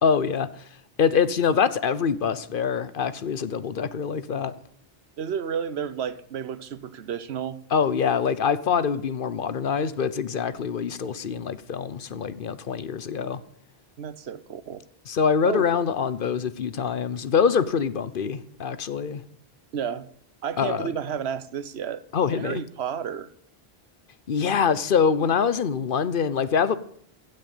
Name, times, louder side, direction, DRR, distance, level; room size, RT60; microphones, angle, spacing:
voice 1, 0.0-0.7 1.0-4.5 7.7-13.4 15.1-19.2 20.6-20.9 22.1-22.6 24.3-26.7, left 6 dB, 60° left, 0.9 m, -24 dB
voice 2, 5.2-7.6 14.0-14.8 15.4-15.6 19.7-20.1 20.4-22.0 22.3-23.3, right 8 dB, 90° right, 1.1 m, -31 dB
15.5 x 6.5 x 8.3 m
omnidirectional pair, 1.1 m